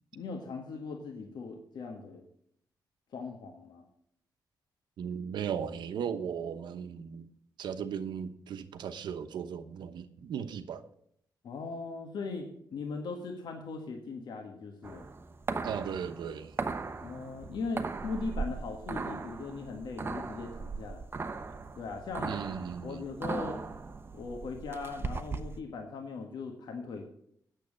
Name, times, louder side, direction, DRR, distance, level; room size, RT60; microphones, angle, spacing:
voice 1, 0.1-2.3 3.1-3.9 11.4-15.1 17.0-21.0 21.7-22.3 22.8-23.6 24.1-27.1, left 4 dB, 80° left, 1.5 m, -39 dB
voice 2, 5.0-7.3 7.6-10.8 15.6-16.6 22.2-23.1, right 7 dB, 85° right, 1.0 m, -37 dB
sound 1, 14.8-25.6, right 4 dB, 30° right, 0.9 m, -38 dB
9.3 x 7.4 x 8.5 m
cardioid pair, 115°, 7 cm